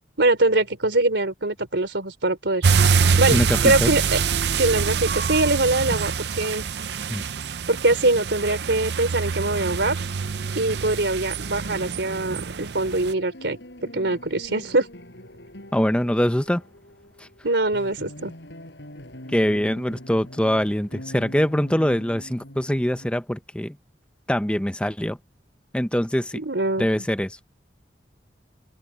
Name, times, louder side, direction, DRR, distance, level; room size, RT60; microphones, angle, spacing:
voice 1, 0.2-2.7 3.2-4.2 4.6-6.6 7.7-10.0 10.6-13.6 13.9-14.9 17.4-18.3 26.3-27.0, right 2 dB, 85° right, 3.4 m, -23 dB
sound 1, 2.6-13.1, right 5 dB, 70° right, 0.6 m, -25 dB
voice 2, 3.3-3.9 7.1-7.2 15.7-16.6 19.3-23.8 24.3-25.2 25.7-26.4 26.8-27.4, equal, 5° left, 0.8 m, -23 dB
sound 2, 12.8-23.1, left 1 dB, 75° left, 6.8 m, -43 dB
open air
head